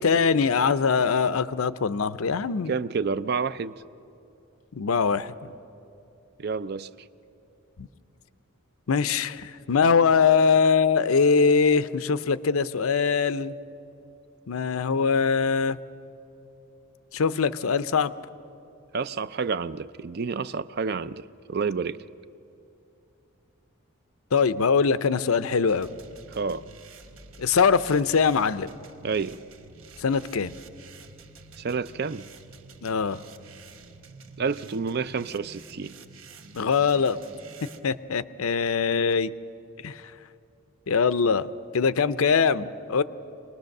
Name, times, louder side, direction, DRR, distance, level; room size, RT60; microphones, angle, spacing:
voice 1, 0.0-2.7 4.7-5.3 7.8-7.9 8.9-13.5 14.5-15.8 17.1-18.1 24.3-25.9 27.4-28.7 30.0-30.5 32.8-33.2 36.5-37.2 37.8-39.3 39.8-40.0 40.9-41.5 41.7-43.0, left 5 dB, 80° left, 14 dB, 0.6 m, -22 dB
voice 2, 2.7-3.7 6.4-6.9 18.9-22.0 26.3-26.6 29.0-29.4 31.6-32.3 34.4-36.0, right 5 dB, 50° right, 15 dB, 0.4 m, -29 dB
sound 1, 25.7-37.8, right 3 dB, 70° right, 1.1 m, -49 dB
25.5 x 19.5 x 6.6 m, 2.7 s
head